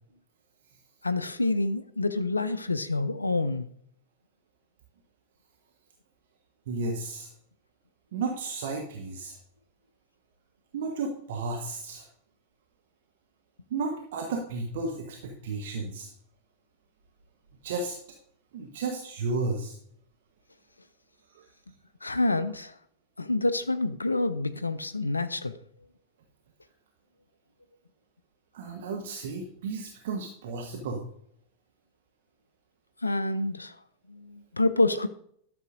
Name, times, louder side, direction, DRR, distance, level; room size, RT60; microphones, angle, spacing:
voice 1, 1.0-3.7 22.0-22.8 23.2-25.5 33.0-33.8 34.1-35.1, left 2 dB, 80° left, 0.4 m, -27 dB
voice 2, 6.7-7.3 8.1-9.4 10.7-12.1 13.7-16.1 17.6-18.0 18.5-19.8 21.4-21.5 28.5-31.1, right 3 dB, 55° right, 1.0 m, -33 dB
12.0 x 6.8 x 2.5 m
figure-of-eight pair, 90°, 0 cm